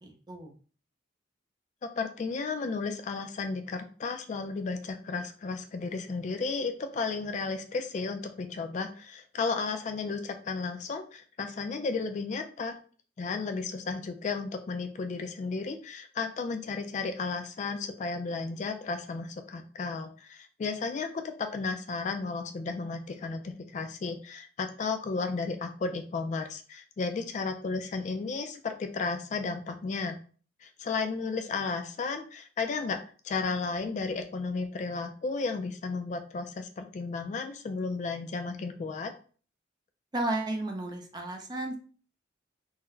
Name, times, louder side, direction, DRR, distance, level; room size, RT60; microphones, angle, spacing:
voice 1, 0.0-0.5 40.1-41.8, right 2 dB, 25° right, 3 dB, 0.5 m, -33 dB
voice 2, 1.8-12.8 13.2-30.2 30.6-33.0 33.2-39.1, left 4 dB, 40° left, 6 dB, 0.3 m, -33 dB
3.8 x 2.0 x 2.6 m, 0.40 s
head